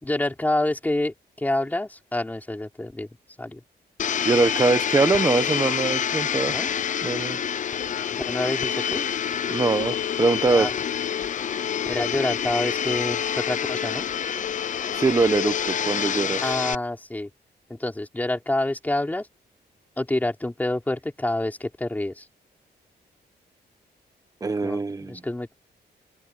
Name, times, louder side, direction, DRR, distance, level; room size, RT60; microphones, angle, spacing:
voice 1, 0.0-3.1 3.4-3.6 6.5-6.7 8.1-9.1 10.5-10.7 11.9-14.1 16.4-17.3 17.7-19.3 20.0-22.3 24.6-25.5, left 1 dB, 10° left, 4.2 m, -27 dB
Domestic sounds home sounds, 4.0-16.7, left 8 dB, 45° left, 0.8 m, -27 dB
voice 2, 4.2-6.5 7.0-7.4 9.5-10.7 14.9-16.4 24.4-25.2, right 3 dB, 20° right, 1.4 m, -22 dB
open air
wide cardioid pair, 170°, 17 cm